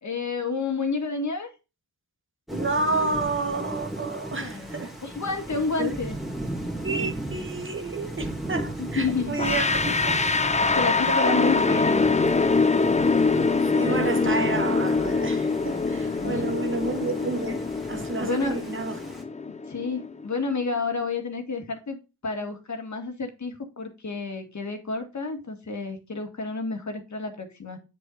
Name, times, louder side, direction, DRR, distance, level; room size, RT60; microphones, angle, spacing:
voice 1, 0.0-1.5 4.3-4.7 5.0-6.2 8.8-9.6 10.6-12.1 16.1-16.5 18.2-18.6 19.7-22.0 22.2-27.8, left 4 dB, 50° left, 2.0 m, -30 dB
Thunder / Rain, 2.5-19.2, right 1 dB, ahead, 2.3 m, -36 dB
voice 2, 2.5-4.9 5.8-6.0 6.8-10.3 11.1-11.4 13.6-19.0, right 3 dB, 35° right, 1.3 m, -30 dB
sound 1, 9.4-20.3, left 4 dB, 20° left, 0.6 m, -24 dB
7.7 x 7.5 x 2.6 m
cardioid pair, 80°, 38 cm